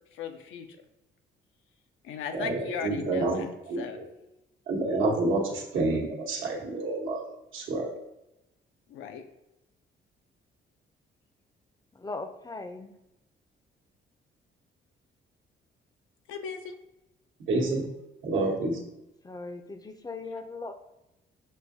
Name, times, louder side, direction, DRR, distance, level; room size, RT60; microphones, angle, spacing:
voice 1, 0.1-0.7 2.0-3.5 3.7-4.0 8.9-9.2 16.3-16.7, left 7 dB, 90° left, 6 dB, 0.5 m, -37 dB
voice 2, 2.3-4.1 4.7-7.2 7.5-7.9 17.4-17.9 18.2-18.8, right 2 dB, 80° right, -1 dB, 1.0 m, -28 dB
voice 3, 11.9-12.9 19.2-20.7, left 3 dB, 20° left, 8 dB, 0.4 m, -39 dB
6.3 x 2.6 x 2.6 m, 0.93 s
cardioid pair, 90°, 20 cm